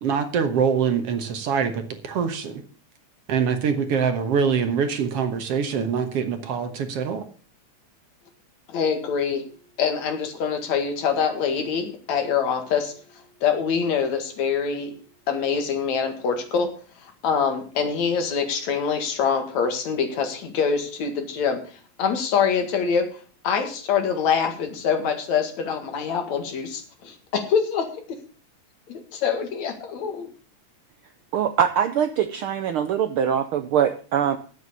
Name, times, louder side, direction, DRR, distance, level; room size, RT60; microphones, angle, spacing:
voice 1, 0.0-2.6 3.3-7.2, right 6 dB, 60° right, 8 dB, 2.0 m, -24 dB
voice 2, 8.7-9.4 9.8-12.9 13.4-14.9 15.3-16.7 17.0-21.6 22.0-23.1 23.4-27.9 28.9-30.3, left 6 dB, 70° left, 6 dB, 3.1 m, -24 dB
voice 3, 31.3-34.4, right 9 dB, 90° right, 9 dB, 1.2 m, -23 dB
10.5 x 8.0 x 6.8 m, 0.39 s
omnidirectional pair, 3.3 m